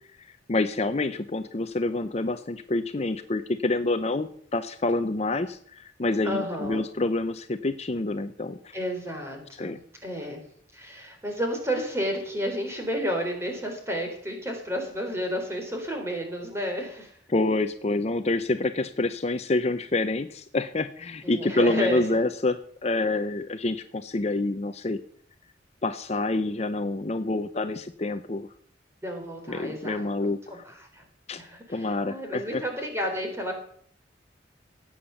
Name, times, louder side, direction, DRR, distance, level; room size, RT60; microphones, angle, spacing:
voice 1, 0.5-8.7 9.6-9.8 17.3-25.0 25.8-28.5 29.5-30.6 31.3-31.4 31.7-32.6, left 2 dB, 35° left, 10 dB, 0.6 m, -27 dB
voice 2, 6.2-6.8 8.7-10.4 10.7-17.2 21.2-22.2 29.0-30.0 30.5-31.0 31.4-33.5, equal, 15° right, 2 dB, 3.9 m, -31 dB
16.5 x 8.8 x 7.0 m, 0.63 s
head